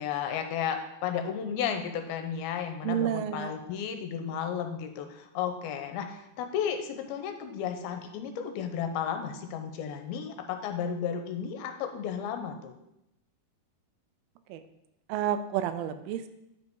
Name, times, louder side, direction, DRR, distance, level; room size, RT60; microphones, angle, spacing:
voice 1, 0.0-12.8, left 8 dB, 85° left, 6 dB, 2.7 m, -33 dB
voice 2, 2.8-3.5 14.5-14.6 15.1-16.3, right 10 dB, 85° right, 11 dB, 2.5 m, -30 dB
10.0 x 5.3 x 4.6 m, 0.85 s
omnidirectional pair, 4.4 m